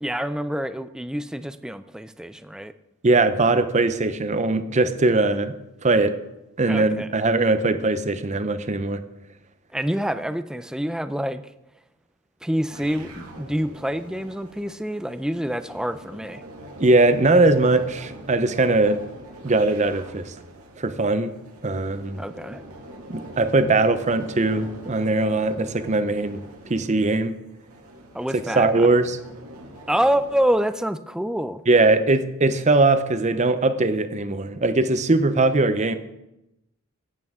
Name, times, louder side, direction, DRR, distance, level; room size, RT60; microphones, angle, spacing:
voice 1, 0.0-2.7 6.7-7.1 9.7-11.4 12.4-16.4 22.2-22.6 28.1-28.9 29.9-31.6, equal, 5° right, 12 dB, 0.4 m, -26 dB
voice 2, 3.0-5.6 5.8-6.1 6.6-9.0 16.8-19.0 19.4-20.3 20.8-21.3 21.6-22.2 23.1-26.4 26.7-27.4 28.6-29.2 31.7-36.0, right 2 dB, 30° right, 11 dB, 0.7 m, -20 dB
sound 1, 12.7-30.5, right 1 dB, 85° right, 2.0 m, -43 dB
15.5 x 8.5 x 3.6 m, 0.91 s
head